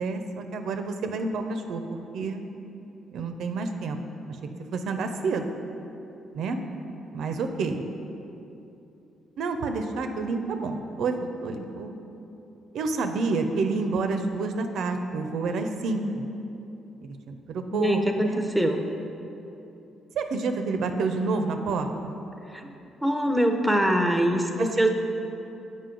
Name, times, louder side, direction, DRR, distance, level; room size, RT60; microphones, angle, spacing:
voice 1, 0.0-2.4 3.1-4.0 4.3-4.4 4.7-5.5 6.3-6.6 7.1-7.8 9.4-12.0 12.7-16.3 17.0-18.4 20.2-22.1 24.6-24.9, right 3 dB, 75° right, 6 dB, 0.4 m, -29 dB
voice 2, 17.7-18.8 22.5-22.7 23.0-24.9, equal, ahead, 4 dB, 0.6 m, -23 dB
7.5 x 5.0 x 3.8 m, 2.8 s
cardioid pair, 90°, 0 cm